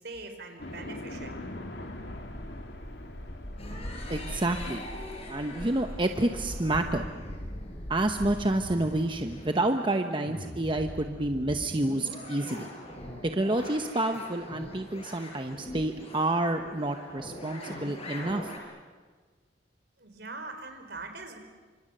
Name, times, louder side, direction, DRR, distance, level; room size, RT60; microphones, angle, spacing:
voice 1, 0.0-1.4 20.0-21.4, right 3 dB, 65° right, 6 dB, 3.9 m, -42 dB
sound 1, 0.6-9.1, left 1 dB, 70° left, 2.6 m, -40 dB
sound 2, 3.6-18.6, left 1 dB, 35° left, 5.3 m, -42 dB
voice 2, 4.1-4.8 5.3-7.1 7.9-12.7 13.2-18.5, right 1 dB, 30° right, 6 dB, 1.0 m, -29 dB
29.5 x 26.0 x 6.8 m, 1.5 s
head